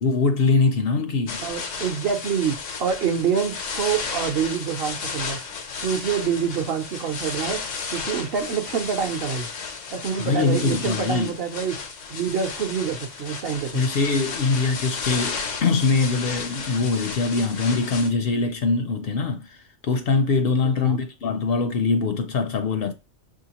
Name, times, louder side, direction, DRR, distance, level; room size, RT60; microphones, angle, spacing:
voice 1, 0.0-1.4 10.2-11.3 13.7-19.6 19.8-22.9, left 4 dB, 60° left, 0.7 m, -23 dB
sound 1, 1.3-18.1, left 5 dB, 85° left, 1.1 m, -33 dB
voice 2, 1.4-5.4 5.8-9.5 9.9-11.8 12.1-13.9 20.6-21.0, right 7 dB, 60° right, 0.8 m, -26 dB
5.9 x 2.8 x 2.9 m
omnidirectional pair, 1.2 m